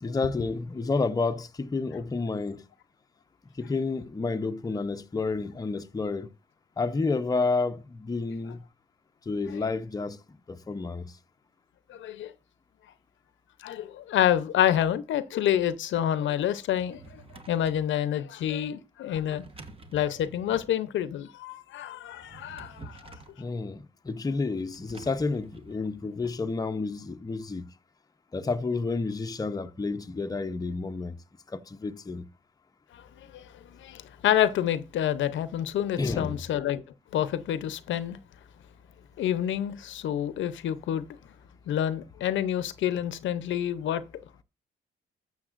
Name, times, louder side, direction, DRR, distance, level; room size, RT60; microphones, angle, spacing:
voice 1, 0.0-2.6 3.6-6.3 6.8-8.7 9.3-10.2 10.5-11.2 23.4-27.7 28.3-31.1 31.5-32.3 36.0-36.4, left 3 dB, 20° left, 0.7 m, -30 dB
voice 2, 11.9-12.3 13.6-19.4 19.9-23.2 32.9-33.5 33.8-36.8 37.1-38.2 39.2-41.1 41.7-44.0, left 10 dB, 75° left, 0.7 m, -28 dB
Drawer open or close, 16.6-17.9 19.1-20.8 22.1-23.4 24.7-26.4, right 3 dB, 30° right, 1.2 m, -49 dB
12.5 x 7.2 x 2.5 m
cardioid pair, 90°, 20 cm